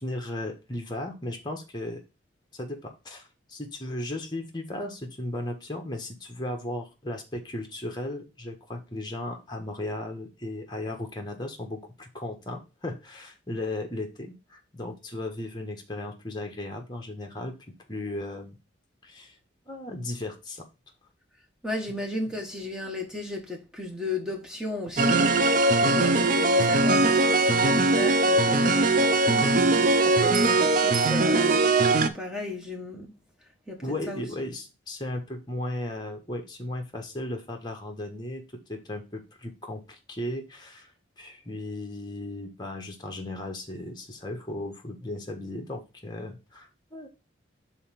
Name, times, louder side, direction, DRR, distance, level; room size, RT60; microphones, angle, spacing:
voice 1, 0.0-2.0 2.5-17.6 17.9-18.6 19.0-19.3 19.7-20.6 33.8-40.9 41.2-47.1, left 1 dB, 20° left, 1.3 m, -36 dB
voice 2, 21.6-25.4 25.8-33.2 33.7-34.2, left 2 dB, 5° right, 1.4 m, -35 dB
sound 1, 25.0-32.1, right 2 dB, 40° right, 0.5 m, -21 dB
5.6 x 4.0 x 5.7 m
head